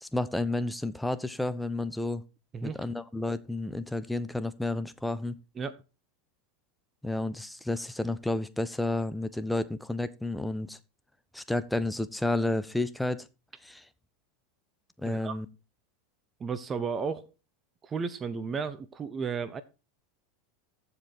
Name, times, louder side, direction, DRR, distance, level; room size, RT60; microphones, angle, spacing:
voice 1, 0.0-2.2 2.6-5.4 7.0-10.8 11.3-13.3 13.6-13.8 15.0-15.5, left 2 dB, 5° left, 0.9 m, -31 dB
voice 2, 15.0-15.4 16.4-17.3 17.8-19.6, right 5 dB, 25° right, 0.9 m, -33 dB
14.5 x 5.2 x 4.6 m
figure-of-eight pair, 80°, 0 cm